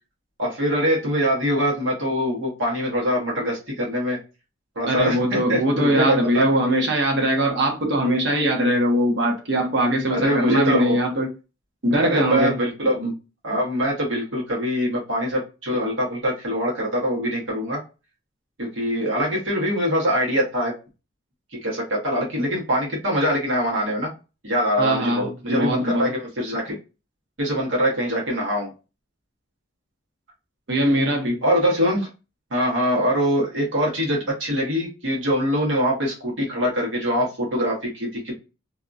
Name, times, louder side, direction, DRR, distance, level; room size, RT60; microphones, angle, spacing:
voice 1, 0.4-4.2 4.7-6.5 10.1-11.0 12.0-13.1 13.4-17.8 18.6-20.7 21.6-24.1 24.4-26.8 27.4-28.7 31.4-32.1 32.5-38.4, equal, 90° right, 1.2 m, -23 dB
voice 2, 4.9-11.3 11.8-12.6 24.8-26.1 30.7-31.4, right 1 dB, 65° right, 0.9 m, -21 dB
2.7 x 2.3 x 2.5 m
head